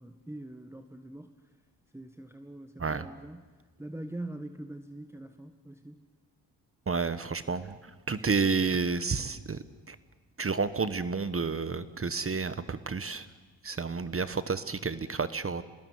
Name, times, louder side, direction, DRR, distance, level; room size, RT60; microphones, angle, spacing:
voice 1, 0.0-1.3 1.9-3.5 3.8-6.0, right 1 dB, 5° right, 7 dB, 1.6 m, -43 dB
voice 2, 6.9-7.7 8.1-10.0 10.4-13.2 13.6-15.6, right 4 dB, 30° right, 13 dB, 1.3 m, -30 dB
26.0 x 19.5 x 9.6 m, 1.4 s
supercardioid pair, 55°, 44 cm